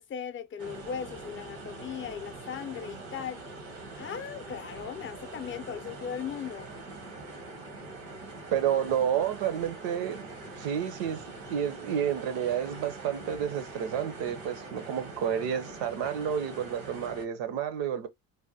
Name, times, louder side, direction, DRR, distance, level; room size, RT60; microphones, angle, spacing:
voice 1, 0.0-3.4 4.0-6.7, left 8 dB, 25° left, 0.5 m, -38 dB
sound 1, 0.6-17.2, right 2 dB, 90° right, 1.2 m, -43 dB
voice 2, 8.5-10.3 10.6-18.1, right 9 dB, 65° right, 0.7 m, -30 dB
3.4 x 2.2 x 2.7 m
hypercardioid pair, 65°, 47 cm